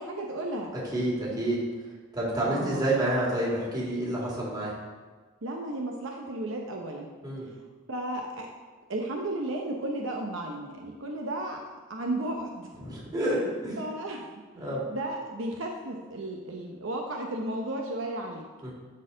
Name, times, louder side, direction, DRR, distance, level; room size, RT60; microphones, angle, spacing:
voice 1, 0.0-0.7 2.4-2.9 5.4-7.1 7.9-8.5 8.9-11.6 11.9-12.7 13.8-14.3 14.9-18.4, right 1 dB, 65° right, 1 dB, 0.8 m, -34 dB
voice 2, 0.9-1.6 2.1-4.7 7.2-7.5 12.8-13.8 14.5-14.8 18.6-18.7, right 1 dB, 20° right, -5 dB, 2.3 m, -28 dB
12.5 x 4.3 x 3.9 m, 1.4 s
head